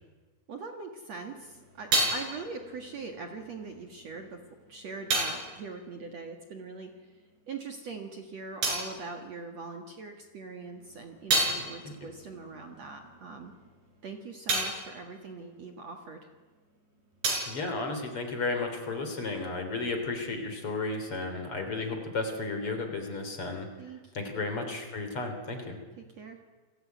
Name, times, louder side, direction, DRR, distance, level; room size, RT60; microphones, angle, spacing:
voice 1, 0.5-4.4 4.7-6.9 7.5-13.5 14.0-16.2 23.8-24.5 26.0-26.4, right 4 dB, 50° right, 4 dB, 2.1 m, -42 dB
sound 1, 1.1-7.1 7.4-10.1 10.5-16.5 16.7-18.8, right 2 dB, 70° right, 7.5 m, -34 dB
voice 2, 11.5-12.1 17.5-23.7 24.1-25.8, left 3 dB, 35° left, 5 dB, 3.8 m, -33 dB
29.0 x 21.0 x 9.4 m, 1.3 s
omnidirectional pair, 5.2 m